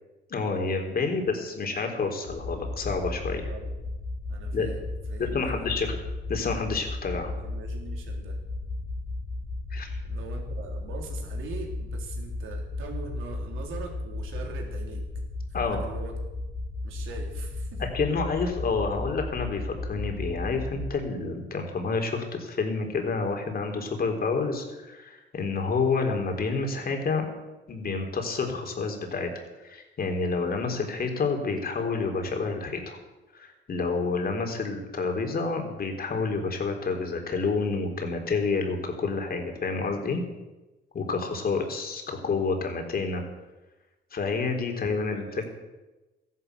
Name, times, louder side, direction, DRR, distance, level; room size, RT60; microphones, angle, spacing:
voice 1, 0.3-3.4 4.5-4.7 5.2-5.9 6.3-7.3 9.7-9.9 15.5-15.8 17.9-27.3 27.7-29.3 29.6-33.0 33.3-40.2 40.9-43.2 44.1-45.4, left 4 dB, 50° left, 3 dB, 3.8 m, -29 dB
sound 1, 2.3-20.9, left 2 dB, 75° left, 3.6 m, -34 dB
voice 2, 3.5-3.8 4.3-5.7 7.1-8.4 10.0-15.1 15.6-16.2 16.8-17.8 44.7-45.4, right 5 dB, 85° right, 1 dB, 3.7 m, -42 dB
14.5 x 11.5 x 8.2 m, 1.1 s
cardioid pair, 90°, 20 cm